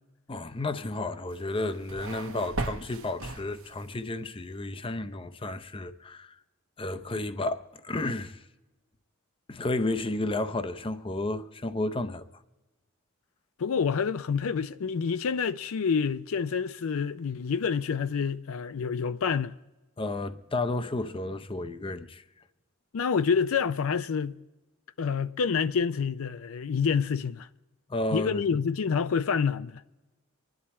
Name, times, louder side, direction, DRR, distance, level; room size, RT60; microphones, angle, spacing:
voice 1, 0.3-6.3 6.8-8.4 9.5-12.3 20.0-22.2 27.9-28.4, left 2 dB, 25° left, 0.6 m, -32 dB
sound 1, 1.3-4.0, right 2 dB, 75° right, 1.1 m, -37 dB
voice 2, 13.6-19.5 22.9-24.4 25.0-27.5 28.1-29.7, left 6 dB, 75° left, 0.5 m, -27 dB
25.0 x 10.5 x 4.3 m
head